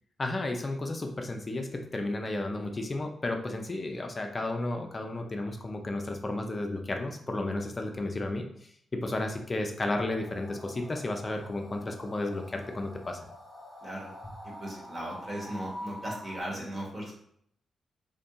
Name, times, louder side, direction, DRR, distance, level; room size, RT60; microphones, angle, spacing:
voice 1, 0.2-8.5 8.9-13.2, left 2 dB, 35° left, 4 dB, 0.4 m, -33 dB
sound 1, 10.2-16.4, equal, 70° right, 1.1 m, -46 dB
voice 2, 14.4-17.2, right 1 dB, 40° right, -2 dB, 1.0 m, -37 dB
2.6 x 2.5 x 2.3 m, 0.68 s
supercardioid pair, 50°, 0 cm